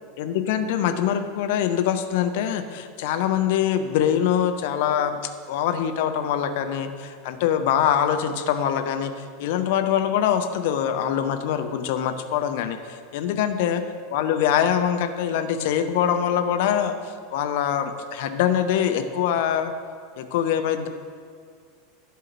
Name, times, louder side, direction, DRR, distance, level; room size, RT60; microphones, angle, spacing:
voice 1, 0.2-5.2 5.5-9.1 9.4-13.8 14.1-19.7 20.2-20.9, left 9 dB, 55° left, 8 dB, 0.6 m, -24 dB
11.0 x 4.7 x 6.2 m, 2.1 s
figure-of-eight pair, 85°, 0 cm